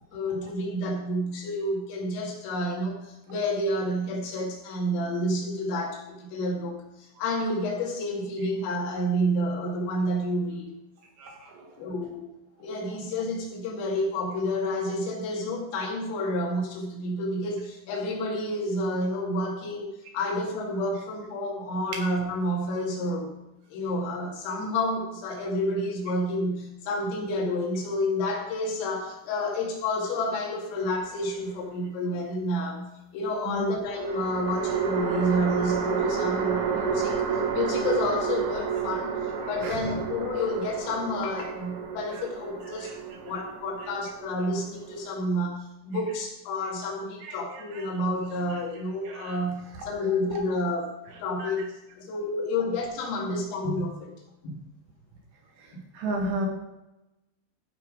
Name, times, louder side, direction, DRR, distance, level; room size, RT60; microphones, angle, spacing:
voice 1, 0.1-10.7 11.8-12.2 12.6-23.3 23.7-32.9 33.1-39.1 39.4-42.9 43.2-50.9 51.2-54.1 54.4-54.6, left 1 dB, 75° left, -1 dB, 4.6 m, -29 dB
voice 2, 11.2-11.6 33.5-33.7 39.6-39.8 42.8-42.9 47.2-47.9 49.0-49.4 51.4-51.5 55.9-56.5, right 1 dB, 70° right, 1 dB, 3.1 m, -33 dB
sound 1, 30.8-31.6 33.9-45.3, right 7 dB, 90° right, 4.3 m, -31 dB
14.5 x 5.7 x 5.0 m, 0.92 s
omnidirectional pair, 5.9 m